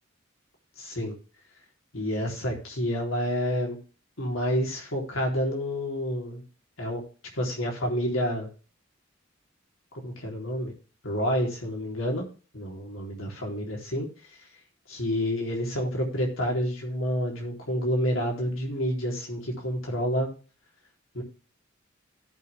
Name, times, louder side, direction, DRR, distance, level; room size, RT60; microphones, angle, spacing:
voice 1, 0.8-1.1 1.9-3.8 4.2-6.4 6.8-7.0 7.3-8.5 10.0-10.7 11.0-12.2 12.5-14.1 14.9-20.3 21.1-21.2, equal, 90° left, -1 dB, 3.9 m, -29 dB
17.0 x 6.1 x 3.5 m, 0.36 s
head